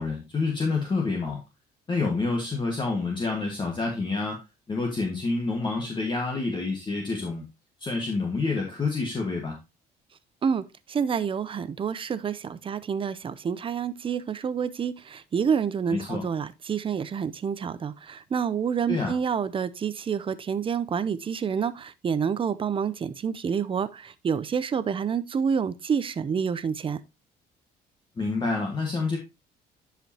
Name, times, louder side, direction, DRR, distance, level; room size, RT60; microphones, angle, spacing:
voice 1, 0.0-1.4 1.9-7.5 7.8-9.6 15.9-16.2 18.9-19.1 28.2-29.2, left 3 dB, 25° left, 1.6 m, -28 dB
voice 2, 10.4-27.0, right 7 dB, 30° right, 0.6 m, -28 dB
10.5 x 5.1 x 2.8 m
cardioid pair, 110°, 17 cm